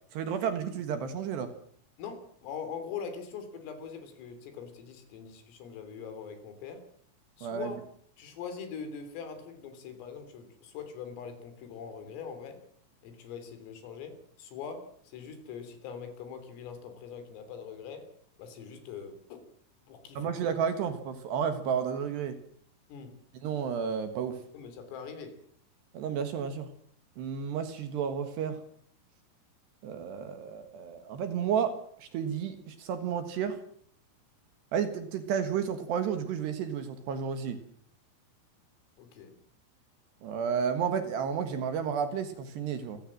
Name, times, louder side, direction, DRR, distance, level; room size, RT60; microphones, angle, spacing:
voice 1, 0.1-1.5 7.4-7.7 20.2-22.4 23.4-24.4 25.9-26.7 27.2-28.6 29.8-33.6 34.7-37.6 40.2-43.0, right 7 dB, 65° right, 9 dB, 3.3 m, -32 dB
voice 2, 2.0-6.8 7.4-7.8 8.2-12.6 13.0-18.1 18.4-19.5 19.9-20.5 22.9-23.2 24.5-25.4 39.0-39.4, left 6 dB, 75° left, 8 dB, 5.9 m, -42 dB
27.5 x 16.0 x 7.6 m, 0.63 s
omnidirectional pair, 6.0 m